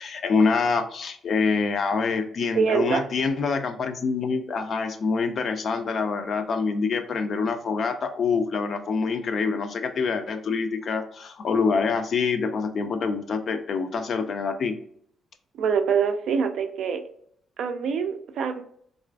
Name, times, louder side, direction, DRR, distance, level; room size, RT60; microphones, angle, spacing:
voice 1, 0.0-14.8, left 4 dB, 55° left, 8 dB, 0.3 m, -26 dB
voice 2, 2.5-3.1 15.6-17.0 17.6-18.6, right 6 dB, 70° right, 6 dB, 0.3 m, -24 dB
2.4 x 2.3 x 2.2 m, 0.64 s
cardioid pair, 90°, 0 cm